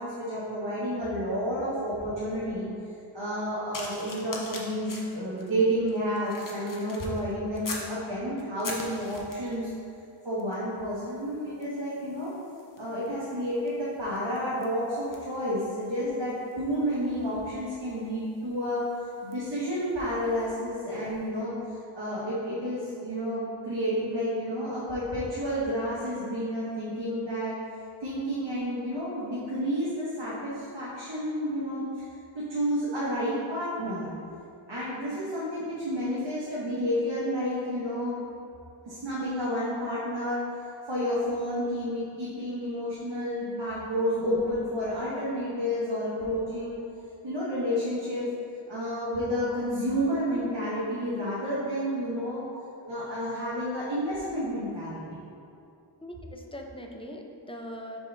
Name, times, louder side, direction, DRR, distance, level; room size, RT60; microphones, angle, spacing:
voice 1, 0.0-2.7 3.1-9.7 10.2-12.3 12.8-18.8 19.2-21.5 21.9-27.6 28.0-32.0 32.3-34.1 34.7-38.2 38.8-40.5 40.9-46.8 47.2-48.3 48.7-52.4 52.8-55.2, equal, 55° right, -9 dB, 1.4 m, -30 dB
sound 1, 3.7-8.0 8.4-9.6 10.4-10.6 10.9-20.6 21.3-21.5, left 2 dB, 40° left, 0.9 m, -44 dB
voice 2, 56.0-58.0, equal, 10° left, 1 dB, 0.7 m, -42 dB
6.5 x 5.2 x 3.4 m, 2.6 s
wide cardioid pair, 60°, 50 cm